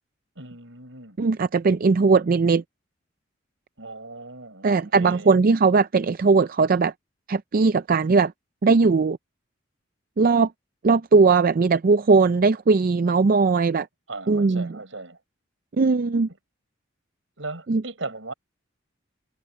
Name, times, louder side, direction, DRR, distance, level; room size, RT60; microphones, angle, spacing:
voice 1, 0.4-1.2 3.8-5.3 14.1-15.2 17.4-18.3, right 3 dB, 75° right, 6.1 m, -37 dB
voice 2, 1.2-2.6 4.6-6.9 7.3-8.3 8.6-9.2 10.2-10.5 10.8-13.9 14.3-14.8 15.8-16.3 17.7-17.8, right 4 dB, 45° right, 0.4 m, -19 dB
head